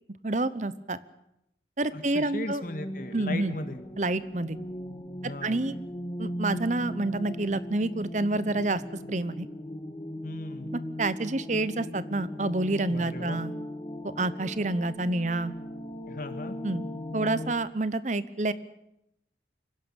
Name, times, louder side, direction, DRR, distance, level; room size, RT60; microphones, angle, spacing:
voice 1, 0.2-1.0 1.8-2.6 3.1-3.5 4.0-4.6 5.4-5.7 6.2-8.8 9.1-9.5 11.0-13.5 14.0-15.5 16.6-16.8 17.1-18.5, right 2 dB, 40° right, 15 dB, 0.9 m, -28 dB
voice 2, 1.9-3.8 5.2-5.6 10.2-10.7 12.9-13.4 16.1-16.6, left 1 dB, 50° left, 8 dB, 1.9 m, -37 dB
sound 1, 2.6-17.5, equal, 25° left, 2.1 m, -38 dB
24.0 x 16.5 x 8.9 m, 0.85 s
head